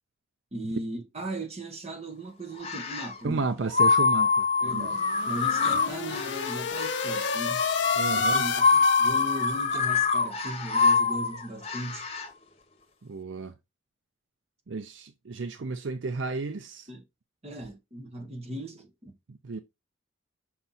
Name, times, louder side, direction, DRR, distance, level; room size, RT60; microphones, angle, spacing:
voice 1, 0.5-3.4 4.6-7.6 8.1-12.1 16.9-17.0 17.4-19.1, right 1 dB, 35° right, 1.4 m, -37 dB
sound 1, 2.6-3.2 3.7-12.3, left 4 dB, 30° left, 1.1 m, -25 dB
voice 2, 3.2-4.9 8.0-8.5 13.0-13.5 14.7-16.9 19.3-19.6, right 3 dB, 70° right, 0.6 m, -33 dB
sound 2, 4.8-9.8, left 6 dB, 65° left, 0.6 m, -31 dB
5.8 x 4.2 x 4.1 m
head